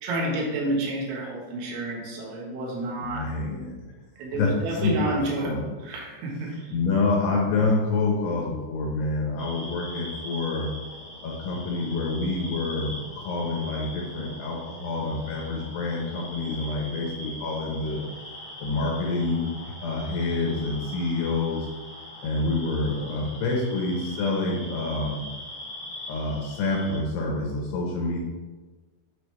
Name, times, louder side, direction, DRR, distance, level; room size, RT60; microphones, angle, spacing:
voice 1, 0.0-3.3 4.2-6.7, right 2 dB, 75° right, -2 dB, 3.6 m, -30 dB
voice 2, 3.0-3.9 4.3-4.5 4.8-5.2 5.4-5.6 6.7-10.7 11.2-18.0 18.6-21.7 22.2-25.3 26.1-28.2, left 3 dB, 75° left, -2 dB, 2.6 m, -27 dB
sound 1, 9.4-27.0, left 1 dB, 55° left, 1.3 m, -41 dB
9.4 x 4.9 x 3.4 m, 1.3 s
omnidirectional pair, 5.6 m